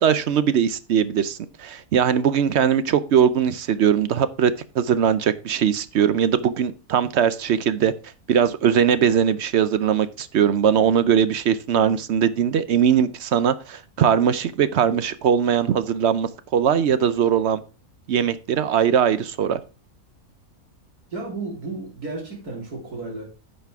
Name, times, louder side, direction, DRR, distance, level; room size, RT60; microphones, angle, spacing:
voice 1, 0.0-7.9 8.3-17.6 18.1-19.6, right 8 dB, 60° right, 14 dB, 0.7 m, -20 dB
voice 2, 21.1-23.2, right 3 dB, 80° right, -2 dB, 4.0 m, -33 dB
10.5 x 6.7 x 3.5 m, 0.32 s
omnidirectional pair, 1.6 m